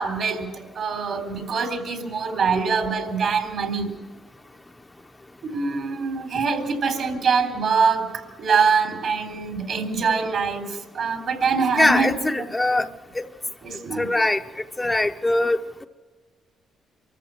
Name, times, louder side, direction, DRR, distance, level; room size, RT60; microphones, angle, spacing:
voice 1, 0.0-3.9 5.4-8.1 8.4-12.4 13.6-14.1, right 5 dB, 60° right, 6 dB, 3.8 m, -24 dB
voice 2, 11.8-12.9 13.1-13.2 14.0-14.4 14.8-15.9, left 2 dB, 15° left, 6 dB, 0.8 m, -22 dB
24.5 x 14.0 x 7.7 m, 1.3 s
cardioid pair, 90°, 0 cm